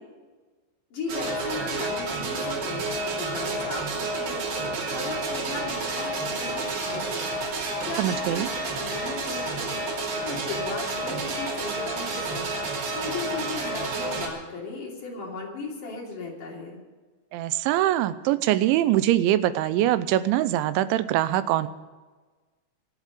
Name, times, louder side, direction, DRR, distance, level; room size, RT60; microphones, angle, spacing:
voice 1, 0.9-7.3 7.8-9.8 10.2-12.5 12.9-16.8, left 3 dB, 50° left, -2 dB, 4.0 m, -37 dB
sound 1, 1.1-14.3, right 2 dB, 60° right, 4.7 m, -30 dB
voice 2, 8.0-8.5 17.3-21.7, right 13 dB, 90° right, 14 dB, 3.1 m, -23 dB
24.5 x 8.3 x 5.3 m, 1.3 s
omnidirectional pair, 5.3 m